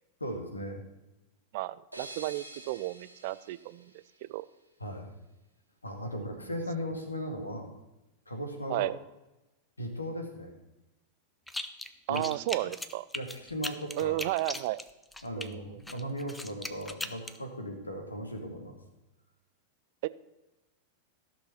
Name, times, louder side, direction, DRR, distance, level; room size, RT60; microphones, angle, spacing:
voice 1, 0.2-0.8 4.8-5.1 5.8-7.7 8.3-8.9 9.8-10.5 12.1-12.2 12.6-12.7 13.1-14.2 15.2-18.8, equal, 80° left, 4 dB, 1.9 m, -37 dB
voice 2, 1.5-3.9 4.2-4.4 6.1-6.2 8.7-8.9 12.1-13.1 14.0-14.8 15.4-15.8 20.0-20.1, right 17 dB, 50° right, 17 dB, 0.4 m, -33 dB
sound 1, 1.9-4.7, right 1 dB, 85° right, 1.6 m, -48 dB
sound 2, 11.5-11.9 12.1-15.5 15.9-17.4, left 2 dB, 5° left, 0.7 m, -38 dB
14.0 x 6.2 x 5.8 m, 1.0 s
figure-of-eight pair, 90°, 0 cm